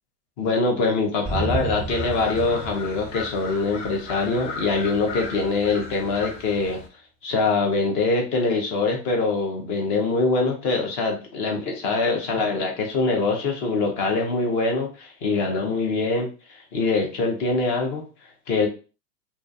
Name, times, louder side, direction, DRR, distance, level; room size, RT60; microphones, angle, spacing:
voice 1, 0.4-6.8 7.2-18.0 18.5-18.7, left 3 dB, 20° left, 1 dB, 0.4 m, -24 dB
sound 1, 1.3-4.0, right 2 dB, 5° left, 0.8 m, -31 dB
sound 2, 1.9-6.9, left 4 dB, 40° left, 0.8 m, -37 dB
2.3 x 2.2 x 2.5 m, 0.34 s
hypercardioid pair, 115°, 50 cm